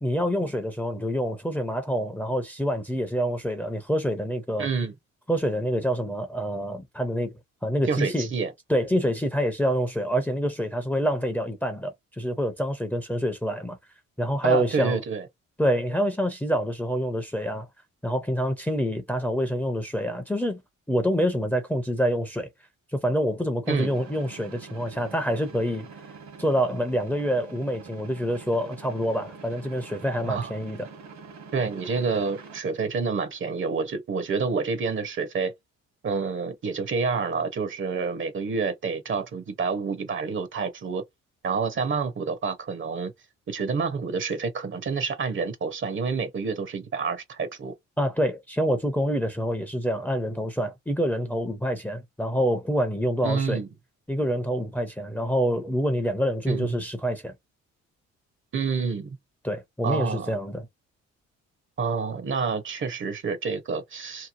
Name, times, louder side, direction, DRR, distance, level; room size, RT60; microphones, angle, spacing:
voice 1, 0.0-4.7 5.3-7.3 7.6-8.3 8.7-13.8 14.2-15.0 15.6-17.7 18.0-20.6 20.9-22.5 22.9-25.9 26.4-30.9 48.0-53.6 54.1-57.3 59.4-60.7, equal, 5° left, 0.6 m, -26 dB
voice 2, 4.6-4.9 7.9-8.5 14.4-15.3 23.7-23.9 30.3-30.5 31.5-35.5 36.0-41.0 41.4-43.1 43.5-47.7 53.2-53.7 56.5-56.8 58.5-59.2 59.8-60.3 61.8-64.3, right 5 dB, 40° right, 0.7 m, -28 dB
sound 1, 23.6-32.6, right 5 dB, 65° right, 1.2 m, -45 dB
2.9 x 2.0 x 2.5 m
cardioid pair, 90°, 30 cm